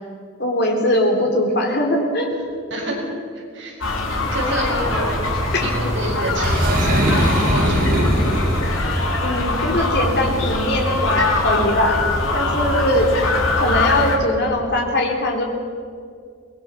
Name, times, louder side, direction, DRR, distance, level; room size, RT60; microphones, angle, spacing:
voice 1, 0.4-2.3 5.5-5.6 9.2-12.0 12.3-13.1 13.6-15.4, left 1 dB, 55° left, 1 dB, 3.5 m, -20 dB
voice 2, 2.7-3.0 3.3-3.8 4.3-5.1 5.6-8.1 8.6-8.9, right 1 dB, 60° right, -3 dB, 6.8 m, -28 dB
sound 1, 3.8-14.2, left 2 dB, 70° left, 3.4 m, -22 dB
Boom, 6.4-9.1, equal, 45° right, 5.3 m, -20 dB
23.5 x 19.0 x 6.2 m, 2.3 s
head